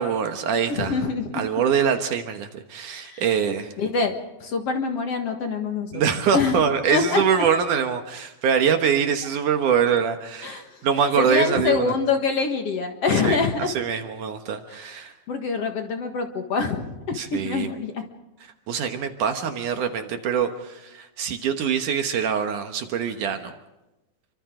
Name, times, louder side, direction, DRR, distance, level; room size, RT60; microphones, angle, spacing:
voice 1, 0.0-1.0 1.3-3.7 5.9-11.9 13.2-13.4 13.7-15.1 17.1-17.7 18.7-23.5, right 7 dB, 65° right, 6 dB, 2.6 m, -24 dB
voice 2, 0.7-1.4 2.9-6.0 6.3-6.6 6.9-7.2 10.4-10.7 11.2-13.7 14.7-14.8 15.3-18.1, left 4 dB, 50° left, 4 dB, 2.2 m, -25 dB
29.0 x 24.5 x 3.8 m, 0.97 s
omnidirectional pair, 4.1 m